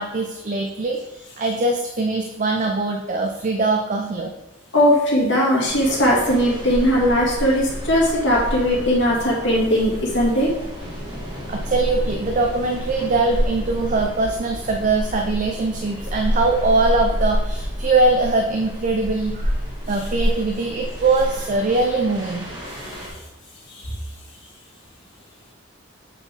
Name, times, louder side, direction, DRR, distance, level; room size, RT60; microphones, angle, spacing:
voice 1, 0.0-4.3 11.5-22.5 22.9-23.1, right 3 dB, 40° right, 2 dB, 0.5 m, -22 dB
voice 2, 4.7-10.5 23.7-23.8, equal, 65° left, -4 dB, 2.0 m, -19 dB
sound 1, 5.6-23.1, equal, 20° right, 2.0 m, -29 dB
7.3 x 4.2 x 3.4 m, 0.96 s
head